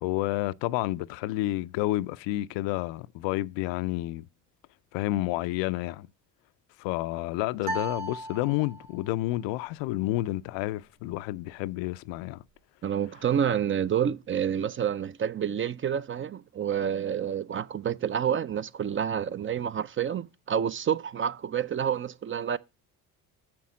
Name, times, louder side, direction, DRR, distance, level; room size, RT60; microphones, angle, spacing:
voice 1, 0.0-4.3 4.9-6.1 6.8-12.4, left 17 dB, 70° left, 0.5 m, -30 dB
sound 1, 7.6-9.1, right 1 dB, 85° right, 2.0 m, -36 dB
voice 2, 12.8-22.6, right 8 dB, 30° right, 0.4 m, -28 dB
7.0 x 5.9 x 6.1 m
hypercardioid pair, 55°, 46 cm